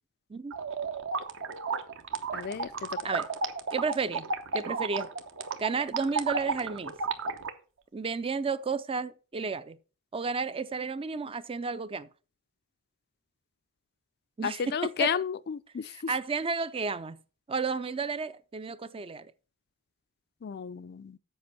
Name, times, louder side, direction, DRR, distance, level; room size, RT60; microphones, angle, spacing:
sound 1, 0.5-7.5, right 4 dB, 60° right, 1.0 m, -33 dB
voice 1, 2.3-3.1 14.4-15.9 20.4-21.2, left 7 dB, 45° left, 0.4 m, -32 dB
voice 2, 3.7-4.3 4.5-5.1 5.6-6.9 7.9-9.8 10.1-12.1 14.4-15.2 15.8-17.2 17.5-19.3, right 4 dB, 25° right, 0.4 m, -32 dB
7.8 x 5.3 x 6.8 m
head